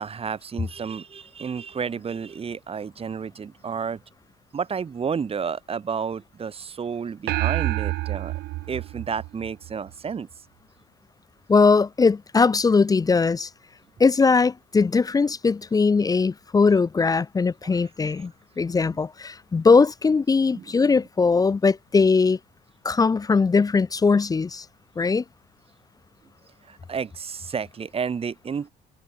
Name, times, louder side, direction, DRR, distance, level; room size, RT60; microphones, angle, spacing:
voice 1, 0.0-4.0 4.5-8.3 8.7-10.3 17.6-18.3 20.6-20.7 26.7-28.7, right 6 dB, 35° right, 3.8 m, -31 dB
sound 1, 7.3-9.9, right 18 dB, 75° right, 0.5 m, -28 dB
voice 2, 11.5-13.5 14.0-18.3 18.6-22.4 22.8-24.6 25.0-25.2, left 4 dB, 20° left, 0.7 m, -20 dB
cardioid pair, 110°, 17 cm